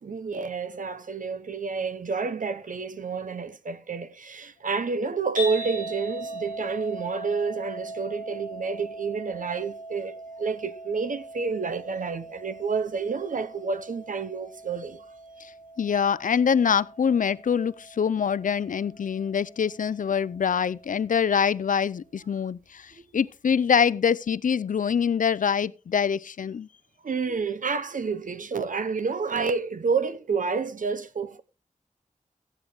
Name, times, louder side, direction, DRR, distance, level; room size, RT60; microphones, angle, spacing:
voice 1, 0.0-15.0 23.0-23.1 27.0-31.4, right 5 dB, 75° right, 0.8 m, -29 dB
sound 1, 5.3-21.6, right 1 dB, 90° right, 5.4 m, -40 dB
voice 2, 15.8-26.7, left 7 dB, 75° left, 0.4 m, -24 dB
14.5 x 9.9 x 3.1 m
wide cardioid pair, 65°, 14 cm